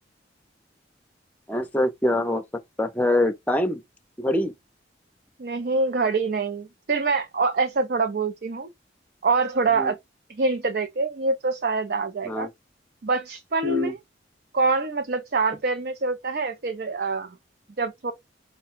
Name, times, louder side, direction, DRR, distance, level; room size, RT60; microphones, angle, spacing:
voice 1, 1.5-2.4 2.8-3.8 4.2-4.5 9.8-9.9 12.2-12.5 13.6-13.9, left 1 dB, 10° left, 0.5 m, -24 dB
voice 2, 5.4-8.7 9.2-10.0 10.3-12.5 13.0-14.0 14.5-17.3 17.8-18.1, right 3 dB, 55° right, 0.5 m, -25 dB
4.9 x 2.2 x 4.5 m
head